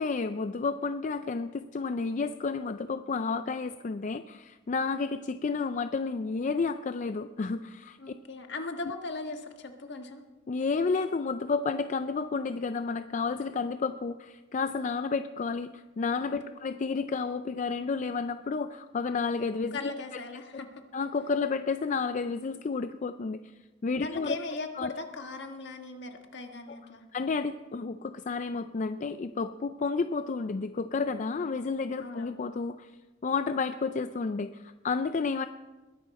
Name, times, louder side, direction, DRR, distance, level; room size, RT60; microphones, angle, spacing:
voice 1, 0.0-8.0 10.5-19.8 20.9-23.4 23.8-24.4 24.8-24.9 27.1-32.9 33.2-35.5, left 4 dB, 40° left, 10 dB, 0.4 m, -31 dB
voice 2, 8.0-10.2 16.4-16.5 19.7-20.8 24.0-27.1 32.0-32.4, left 3 dB, 60° left, 5 dB, 1.5 m, -39 dB
21.0 x 11.0 x 4.2 m, 1.2 s
head